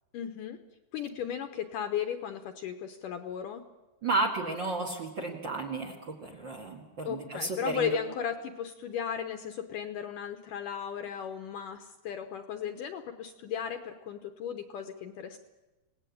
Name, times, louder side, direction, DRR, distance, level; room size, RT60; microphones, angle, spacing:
voice 1, 0.1-0.6 0.9-3.6 7.0-15.4, left 8 dB, 70° left, 7 dB, 2.2 m, -35 dB
voice 2, 4.0-8.0, right 3 dB, 40° right, 5 dB, 2.0 m, -32 dB
27.0 x 18.5 x 8.6 m, 1.1 s
omnidirectional pair, 4.6 m